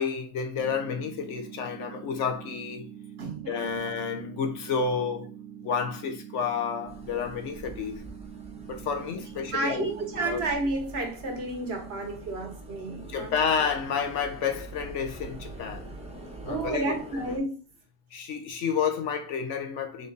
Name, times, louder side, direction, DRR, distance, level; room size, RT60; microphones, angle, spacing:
voice 1, 0.0-2.9 3.5-5.3 5.6-8.0 8.7-9.9 10.2-10.4 13.1-15.9 16.4-17.2 18.1-20.1, left 6 dB, 70° left, 1.1 m, -30 dB
sound 1, 0.6-10.6, right 9 dB, 90° right, 1.1 m, -44 dB
voice 2, 3.2-3.8 9.5-13.7 16.5-17.6, right 2 dB, 55° right, 1.2 m, -31 dB
sound 2, 6.9-17.4, right 2 dB, 5° right, 0.8 m, -44 dB
3.7 x 3.5 x 3.8 m
omnidirectional pair, 1.3 m